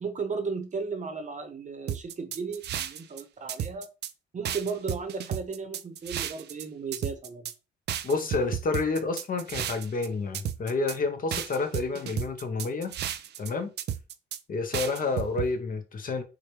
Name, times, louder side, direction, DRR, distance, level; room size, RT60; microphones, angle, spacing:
voice 1, 0.0-3.9 4.3-7.5, right 4 dB, 40° right, 0.8 m, -35 dB
sound 1, 1.9-3.2 3.5-4.1 4.4-6.6 6.9-7.5 7.9-10.1 10.3-11.0 11.3-13.5 13.8-14.4 14.7-15.5, right 10 dB, 60° right, 0.4 m, -33 dB
voice 2, 8.0-12.9 13.4-13.7 14.5-16.2, left 3 dB, 45° left, 0.8 m, -29 dB
4.7 x 2.2 x 3.1 m
cardioid pair, 90°, 20 cm